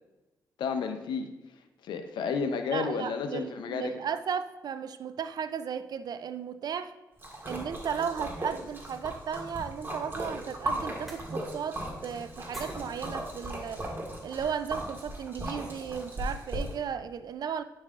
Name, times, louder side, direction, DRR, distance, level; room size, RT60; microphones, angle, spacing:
voice 1, 0.6-1.3 1.8-3.9, left 5 dB, 85° left, 7 dB, 0.7 m, -31 dB
voice 2, 2.7-6.9 7.4-13.8 14.2-17.6, right 7 dB, 60° right, 12 dB, 0.4 m, -35 dB
Splash splatter, 7.2-16.7, right 1 dB, 30° right, 1.8 m, -37 dB
sound 1, 9.1-14.5, equal, ahead, 2.3 m, -53 dB
9.4 x 5.4 x 2.4 m, 1.0 s
cardioid pair, 60°, 8 cm